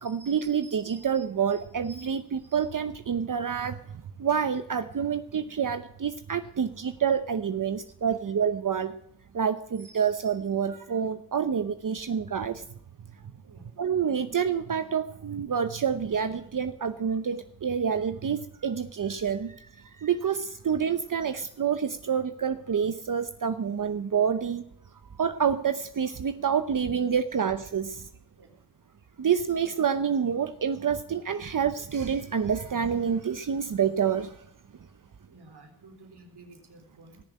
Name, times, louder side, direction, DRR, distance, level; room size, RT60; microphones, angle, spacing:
voice 1, 0.0-3.8 4.2-9.0 9.3-12.6 13.8-19.6 20.0-24.6 25.2-28.1 29.2-34.4, right 7 dB, 55° right, 10 dB, 0.8 m, -28 dB
voice 2, 35.3-37.2, right 2 dB, 75° right, 4 dB, 3.5 m, -52 dB
19.5 x 7.3 x 8.7 m, 0.74 s
cardioid pair, 65°, 39 cm